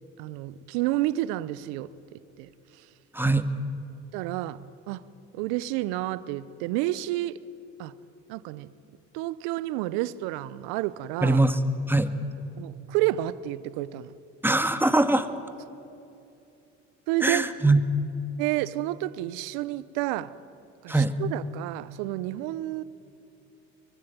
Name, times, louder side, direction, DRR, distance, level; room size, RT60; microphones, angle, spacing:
voice 1, 0.2-1.9 2.4-2.5 4.1-4.6 4.9-5.0 5.3-7.4 7.8-7.9 8.3-8.7 9.1-11.4 12.6-14.1 17.1-17.5 18.4-20.3 20.8-22.8, right 16 dB, 70° right, 1.0 m, -30 dB
voice 2, 11.2-11.6 11.9-12.1 14.4-15.3 17.2-17.8 20.9-21.1, right 2 dB, 5° right, 2.0 m, -22 dB
23.5 x 23.0 x 9.2 m
hypercardioid pair, 60°, 37 cm